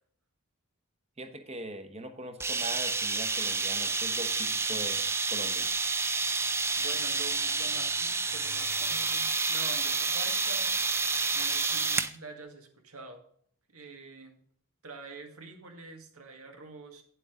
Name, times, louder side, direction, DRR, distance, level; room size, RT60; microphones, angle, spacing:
voice 1, 1.2-5.7, right 1 dB, 30° right, 7 dB, 1.0 m, -41 dB
sound 1, 2.4-12.1, right 4 dB, 10° right, 0.4 m, -29 dB
voice 2, 6.8-10.7 11.3-13.2 13.7-14.4 14.8-17.0, right 3 dB, 90° right, 4 dB, 1.9 m, -46 dB
9.9 x 7.7 x 3.8 m, 0.62 s
head